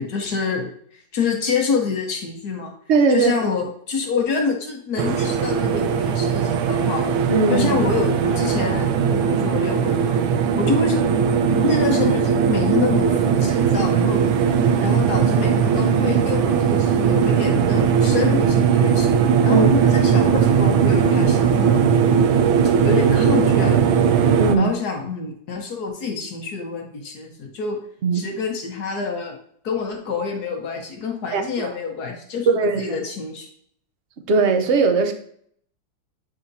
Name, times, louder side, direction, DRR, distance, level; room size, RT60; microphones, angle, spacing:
voice 1, 0.0-2.7 3.1-7.1 7.5-10.1 10.6-11.0 11.6-14.2 14.8-19.1 19.4-21.8 22.8-24.1 24.6-27.8 28.1-29.4 29.6-33.4, left 4 dB, 55° left, 1 dB, 1.5 m, -27 dB
voice 2, 2.9-3.3 7.3-7.7 19.5-19.6 24.4-24.7 28.0-28.2 31.3-31.7 32.5-32.8 34.3-35.1, right 4 dB, 60° right, 6 dB, 0.7 m, -19 dB
sound 1, 5.0-24.6, right 7 dB, 90° right, 1.4 m, -18 dB
7.8 x 5.0 x 2.7 m, 0.64 s
omnidirectional pair, 2.1 m